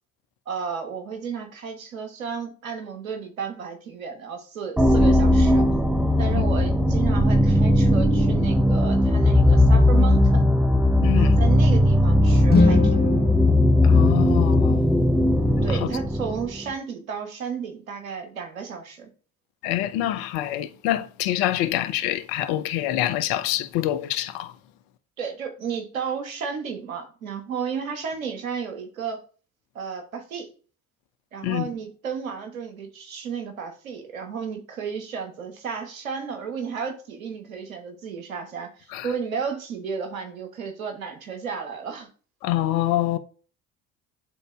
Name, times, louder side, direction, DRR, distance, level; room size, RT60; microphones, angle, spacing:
voice 1, 0.5-5.7 6.2-10.5 11.1-13.1 15.6-19.1 25.2-29.2 29.7-30.5 31.3-42.1, right 6 dB, 85° right, 1.2 m, -33 dB
sound 1, 4.8-16.6, left 1 dB, ahead, 0.6 m, -18 dB
voice 2, 11.0-11.4 13.8-14.8 15.7-15.9 19.6-24.5 31.4-31.7 38.9-39.1 42.4-43.2, left 13 dB, 65° left, 0.7 m, -26 dB
sound 2, 12.5-14.7, left 3 dB, 25° left, 1.0 m, -24 dB
10.5 x 3.8 x 2.3 m
hypercardioid pair, 60°, 40 cm